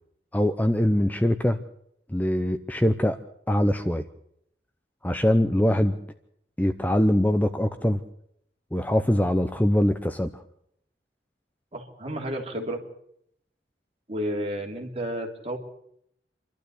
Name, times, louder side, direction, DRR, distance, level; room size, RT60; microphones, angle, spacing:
voice 1, 0.3-1.6 2.1-3.2 3.5-4.0 5.0-6.0 6.6-8.0 8.7-10.4, left 1 dB, 10° left, 9 dB, 0.7 m, -23 dB
voice 2, 11.7-12.8 14.1-15.6, equal, 35° right, 1 dB, 3.3 m, -31 dB
28.0 x 12.5 x 8.4 m, 0.73 s
head